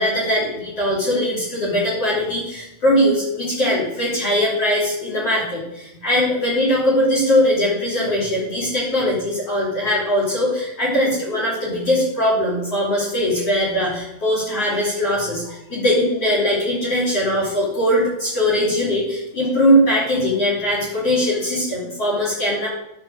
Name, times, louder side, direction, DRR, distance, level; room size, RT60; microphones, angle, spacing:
voice 1, 0.0-22.7, equal, 45° left, -3 dB, 4.1 m, -20 dB
11.5 x 6.3 x 6.4 m, 0.87 s
omnidirectional pair, 4.1 m